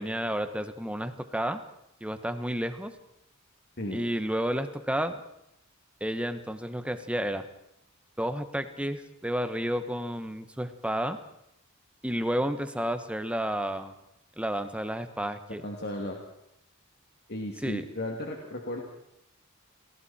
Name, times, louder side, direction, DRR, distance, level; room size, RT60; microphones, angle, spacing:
voice 1, 0.0-1.6 2.0-2.9 3.9-5.2 6.0-7.5 8.2-11.2 12.0-13.9 14.4-15.6 17.6-17.8, equal, 5° right, 9 dB, 1.3 m, -31 dB
voice 2, 15.6-16.2 17.3-18.8, left 1 dB, 50° left, 0 dB, 2.7 m, -35 dB
29.5 x 20.0 x 4.4 m, 0.80 s
head